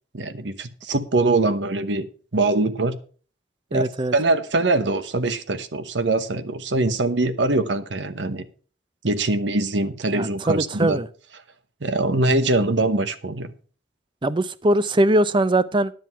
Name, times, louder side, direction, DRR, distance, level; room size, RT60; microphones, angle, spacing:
voice 1, 0.1-2.1 2.3-2.9 3.7-8.4 9.0-11.0 11.8-13.5, right 2 dB, 75° right, 12 dB, 1.0 m, -23 dB
voice 2, 3.7-4.1 10.1-11.1 14.2-15.9, right 1 dB, 25° right, 16 dB, 0.6 m, -21 dB
10.5 x 7.5 x 5.8 m, 0.39 s
head